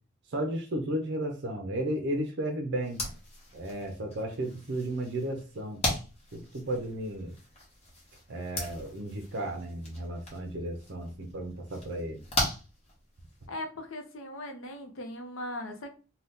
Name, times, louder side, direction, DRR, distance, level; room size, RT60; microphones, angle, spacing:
voice 1, 0.3-3.0 3.5-5.8 6.3-7.4 8.3-12.2, right 1 dB, 55° right, 3 dB, 0.6 m, -34 dB
sound 1, 2.8-13.5, left 1 dB, 30° left, 1.0 m, -38 dB
voice 2, 13.5-15.9, left 1 dB, 70° left, 6 dB, 0.6 m, -39 dB
2.7 x 2.2 x 3.5 m, 0.34 s
head